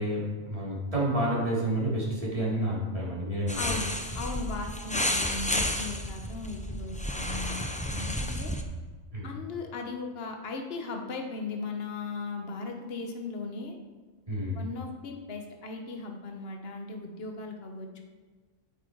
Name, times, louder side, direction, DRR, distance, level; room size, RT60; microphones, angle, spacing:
voice 1, 0.0-3.6 9.1-9.3 14.3-14.6, right 1 dB, 25° right, -7 dB, 3.8 m, -29 dB
sound 1, 3.5-8.6, left 1 dB, 10° left, 0.6 m, -31 dB
voice 2, 3.6-8.5 9.2-13.7 14.5-18.0, left 3 dB, 50° left, 3 dB, 1.4 m, -37 dB
9.3 x 9.2 x 4.7 m, 1.4 s
omnidirectional pair, 1.4 m